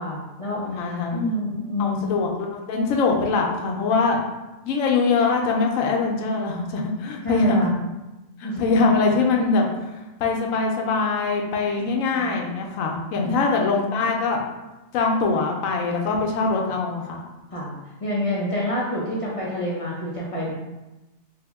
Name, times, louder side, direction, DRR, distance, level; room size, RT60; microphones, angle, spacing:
voice 1, 0.0-2.1 7.2-7.7 8.4-8.9 11.8-12.4 13.2-13.4 17.5-17.7 18.0-20.5, equal, 60° left, -5 dB, 0.3 m, -28 dB
voice 2, 0.6-1.2 1.8-4.2 4.7-7.6 8.4-9.7 10.2-14.4 14.9-17.2, left 4 dB, 80° left, 1 dB, 1.0 m, -23 dB
3.5 x 2.0 x 3.4 m, 1.0 s
omnidirectional pair, 1.4 m